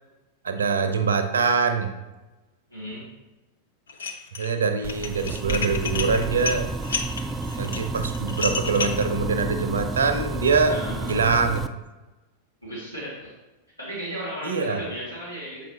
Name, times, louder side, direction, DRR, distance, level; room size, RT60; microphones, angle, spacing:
voice 1, 0.4-1.9 4.4-6.7 7.6-10.8 11.1-11.6 14.4-14.8, right 5 dB, 70° right, 9 dB, 0.6 m, -23 dB
voice 2, 2.7-3.1 7.8-7.9 10.7-11.2 12.6-13.3 13.8-15.6, equal, 90° left, -9 dB, 2.0 m, -35 dB
Dishes pots and pans, 3.9-4.5 4.8-9.1, left 5 dB, 70° left, 0.5 m, -31 dB
sound 1, 4.8-11.7, right 2 dB, 15° right, 0.3 m, -31 dB
7.3 x 4.9 x 2.8 m, 1.1 s
figure-of-eight pair, 90°, 0 cm